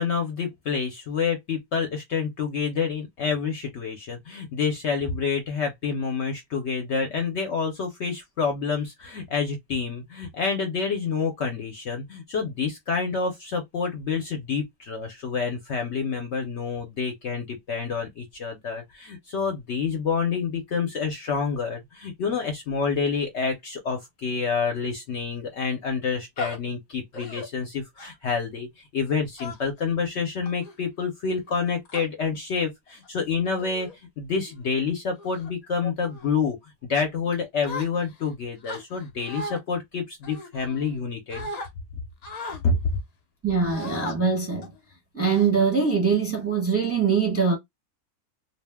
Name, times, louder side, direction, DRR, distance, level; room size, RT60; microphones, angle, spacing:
voice 1, 0.0-36.6 36.8-41.5 42.6-42.8, left 5 dB, 65° left, 0.8 m, -28 dB
sound 1, 26.4-26.6 27.1-27.5 28.0-28.3 29.4-29.8 30.4-30.7 31.5-32.0 32.9-33.1 33.6-34.0 34.4-34.7 35.2-35.5 36.0-36.3 37.6-38.3 38.6-39.6 40.2-41.0 41.3-41.7 42.2-42.6 43.6-44.2 44.6-44.8 45.2-45.9, left 2 dB, 85° left, 0.3 m, -37 dB
voice 2, 43.4-44.7 45.1-47.6, right 5 dB, 15° right, 0.7 m, -23 dB
2.6 x 2.1 x 3.3 m
omnidirectional pair, 1.5 m